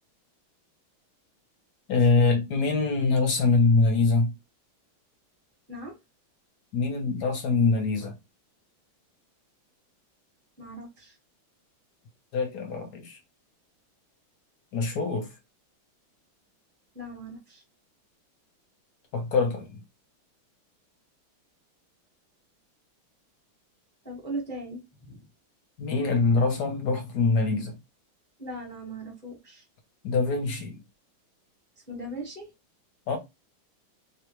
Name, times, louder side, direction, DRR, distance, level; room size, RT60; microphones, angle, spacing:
voice 1, 1.9-4.3 6.7-8.1 12.3-13.2 14.7-15.3 19.1-19.8 25.8-27.7 30.0-30.8 33.1-33.2, left 4 dB, 60° left, 1.2 m, -24 dB
voice 2, 10.6-11.2 16.9-17.6 24.0-25.2 28.4-29.6 31.9-32.5, right 1 dB, 10° left, 0.7 m, -39 dB
3.4 x 2.4 x 3.0 m
omnidirectional pair, 2.4 m